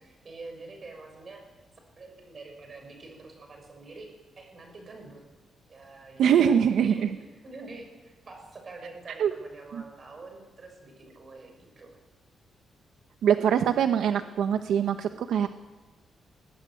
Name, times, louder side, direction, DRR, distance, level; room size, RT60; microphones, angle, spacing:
voice 1, 0.0-1.4 2.0-4.1 4.4-5.2 5.7-12.0, right 3 dB, 30° right, 4 dB, 6.5 m, -46 dB
voice 2, 6.2-7.1 9.2-9.3 9.7-9.8 13.2-15.5, right 8 dB, 80° right, 8 dB, 1.0 m, -23 dB
21.0 x 19.5 x 9.2 m, 1.2 s
wide cardioid pair, 165°, 0 cm